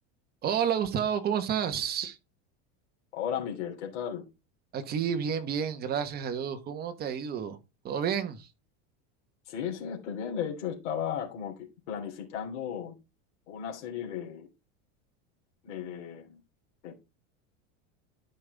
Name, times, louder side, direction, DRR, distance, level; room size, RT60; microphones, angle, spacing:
voice 1, 0.4-2.2 4.7-7.6 7.8-8.5, right 8 dB, 25° right, 1.3 m, -30 dB
voice 2, 3.1-4.2 9.4-13.0 13.5-14.5 15.6-16.4 16.8-17.0, left 8 dB, 85° left, 3.3 m, -35 dB
12.0 x 5.4 x 3.5 m
supercardioid pair, 160°, 34 cm